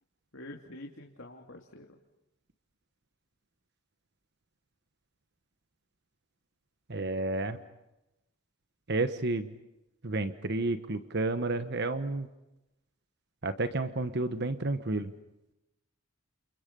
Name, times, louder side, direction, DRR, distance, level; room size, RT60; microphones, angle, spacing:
voice 1, 0.3-2.0, left 1 dB, 60° left, 1 dB, 2.7 m, -46 dB
voice 2, 6.9-7.6 8.9-9.5 10.0-12.3 13.4-15.1, right 2 dB, 55° right, 9 dB, 1.2 m, -31 dB
29.5 x 29.0 x 5.4 m, 0.92 s
head